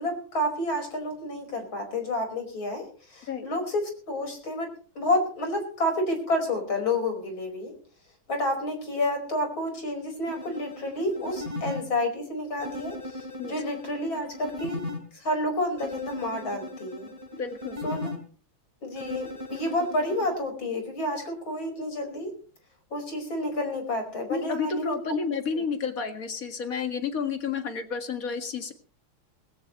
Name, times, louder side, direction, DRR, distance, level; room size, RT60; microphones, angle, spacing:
voice 1, 0.0-4.7 5.0-7.7 8.3-14.8 15.1-17.1 17.8-18.1 18.8-22.3 22.9-25.0, left 1 dB, 65° left, 4 dB, 5.8 m, -30 dB
sound 1, 10.3-11.8 12.6-15.0 15.8-18.2 19.0-20.4, left 2 dB, 15° right, 3.7 m, -38 dB
voice 2, 17.3-17.8 24.3-28.7, left 5 dB, 40° left, 6 dB, 2.2 m, -31 dB
20.0 x 17.0 x 3.1 m, 0.40 s
omnidirectional pair, 2.3 m